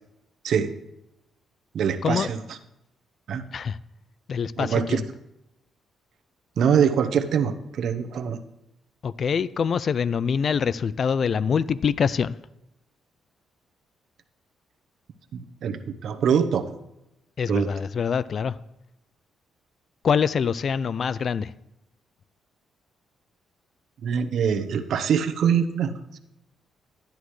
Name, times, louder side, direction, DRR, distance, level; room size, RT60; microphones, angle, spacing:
voice 1, 1.7-2.4 3.3-3.4 4.6-5.0 6.6-8.4 15.3-16.6 17.5-17.7 24.0-26.2, right 7 dB, 70° right, 0.9 m, -24 dB
voice 2, 4.3-5.0 9.0-12.4 17.4-18.6 20.0-21.5, left 6 dB, 55° left, 0.4 m, -25 dB
11.5 x 10.5 x 3.1 m
cardioid pair, 75°, 0 cm